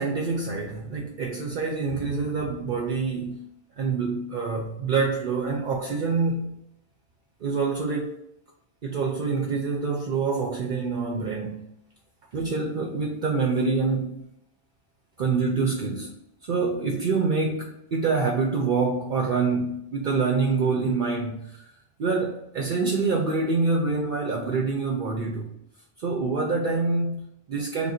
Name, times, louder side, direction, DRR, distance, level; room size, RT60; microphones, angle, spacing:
voice 1, 0.0-3.4 3.8-6.6 7.4-8.1 8.8-11.6 12.3-14.2 15.2-16.1 16.5-21.7 22.0-25.5 26.0-27.9, right 4 dB, 55° right, 0.7 m, -26 dB
3.6 x 2.5 x 4.2 m
omnidirectional pair, 1.1 m